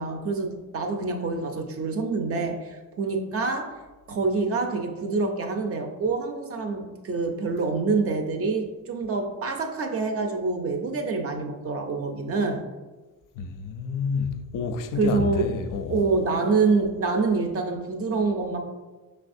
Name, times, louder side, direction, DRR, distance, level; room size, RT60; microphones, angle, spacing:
voice 1, 0.0-3.8 4.1-12.6 14.9-15.6 15.9-18.6, right 4 dB, 40° right, 0.5 m, -26 dB
voice 2, 13.4-16.0, left 5 dB, 55° left, 0.4 m, -29 dB
5.5 x 3.3 x 2.6 m
cardioid pair, 155°, 38 cm